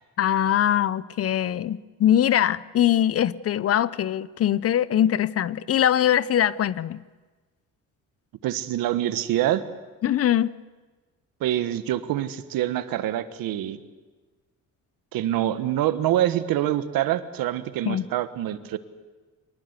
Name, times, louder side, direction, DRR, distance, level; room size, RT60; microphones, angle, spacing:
voice 1, 0.2-7.0 10.0-10.5 17.9-18.0, left 11 dB, 45° left, 0.6 m, -22 dB
voice 2, 8.4-9.6 11.4-13.8 15.1-18.8, right 12 dB, 80° right, 1.4 m, -25 dB
24.0 x 20.0 x 8.1 m
cardioid pair, 130°, 34 cm